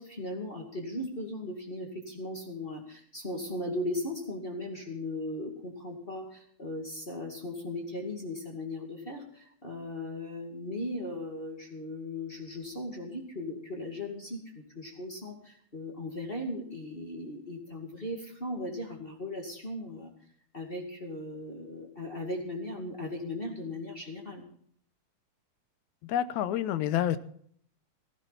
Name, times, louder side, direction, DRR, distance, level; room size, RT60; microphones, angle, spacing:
voice 1, 0.0-20.1 20.5-24.4, left 1 dB, 20° left, 1 dB, 2.1 m, -37 dB
voice 2, 26.1-27.2, left 11 dB, 80° left, 14 dB, 2.2 m, -28 dB
15.5 x 15.5 x 4.1 m, 0.62 s
omnidirectional pair, 3.3 m